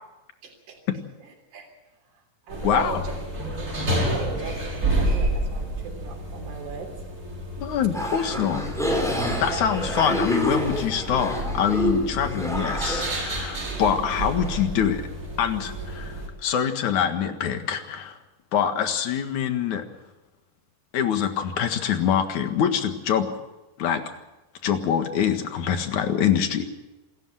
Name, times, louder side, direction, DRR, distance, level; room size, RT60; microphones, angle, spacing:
voice 1, 0.4-0.8 1.2-1.7 2.1-3.1 3.5-6.9 9.5-9.9, right 5 dB, 65° right, 0 dB, 4.8 m, -37 dB
sound 1, 2.5-16.3, right 1 dB, 25° right, 5.5 m, -30 dB
voice 2, 2.6-3.0 7.6-8.6 9.4-15.0 15.4-18.2 18.5-19.9 20.9-23.3 23.8-24.0 24.6-26.6, left 8 dB, 65° left, 7 dB, 3.0 m, -24 dB
sound 2, 7.9-14.6, equal, ahead, 4.4 m, -28 dB
27.0 x 13.5 x 7.9 m, 1.1 s
omnidirectional pair, 3.8 m